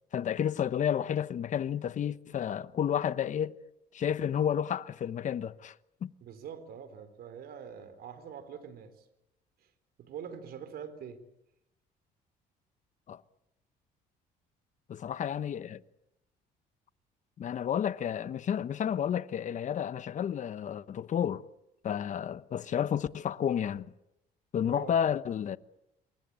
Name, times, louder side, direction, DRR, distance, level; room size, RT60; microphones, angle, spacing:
voice 1, 0.1-3.5 3.9-5.7 6.0-6.1 13.1-13.2 14.9-15.8 17.4-21.4 21.8-23.9 24.5-25.6, left 9 dB, 45° left, 1.1 m, -31 dB
voice 2, 6.2-9.1 10.0-11.2 24.6-25.0, right 7 dB, 65° right, 3.9 m, -44 dB
28.0 x 23.5 x 8.9 m
cardioid pair, 110°, 17 cm